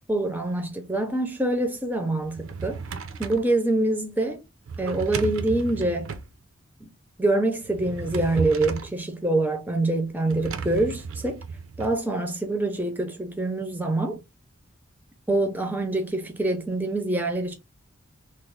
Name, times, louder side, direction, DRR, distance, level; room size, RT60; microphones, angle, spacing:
voice 1, 0.1-2.8 3.2-4.4 4.8-6.1 6.8-6.9 7.2-11.4 11.8-14.2 15.3-17.5, right 2 dB, 10° right, 0.5 m, -25 dB
Drawer open or close, 2.2-3.5 4.7-6.3 7.6-9.0 10.3-11.9, right 5 dB, 80° right, 0.5 m, -34 dB
3.0 x 2.0 x 3.8 m
head